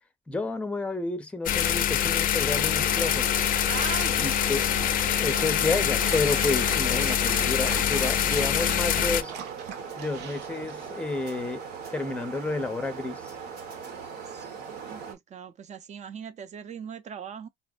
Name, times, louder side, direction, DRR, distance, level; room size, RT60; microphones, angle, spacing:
voice 1, 0.3-3.3 4.2-4.7 5.2-9.3 10.0-11.6 11.9-13.3, left 3 dB, 5° left, 0.6 m, -30 dB
sound 1, 1.5-9.2, left 10 dB, 55° left, 0.4 m, -25 dB
sound 2, 2.4-15.1, right 6 dB, 70° right, 1.0 m, -39 dB
voice 2, 3.7-4.5 5.2-5.5 6.9-7.2 14.2-17.5, right 7 dB, 45° right, 0.6 m, -40 dB
Dog, 6.0-10.9, right 8 dB, 90° right, 0.6 m, -41 dB
4.2 x 2.0 x 2.3 m
cardioid pair, 110°, 17 cm